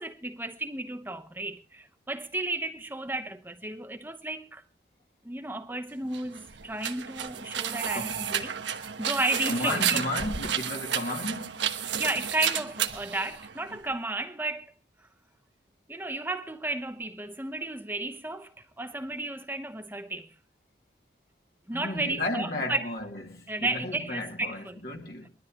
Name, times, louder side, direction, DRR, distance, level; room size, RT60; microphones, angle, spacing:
voice 1, 0.0-4.6 5.2-8.5 9.0-10.0 12.0-14.7 15.9-20.3 21.7-22.9 23.5-24.8, right 2 dB, 10° right, 1.0 m, -33 dB
sound 1, 6.0-13.9, right 9 dB, 85° right, 1.2 m, -32 dB
voice 2, 7.9-8.2 9.5-11.6 21.7-25.3, left 1 dB, 55° left, 2.5 m, -33 dB
22.5 x 13.0 x 3.0 m
head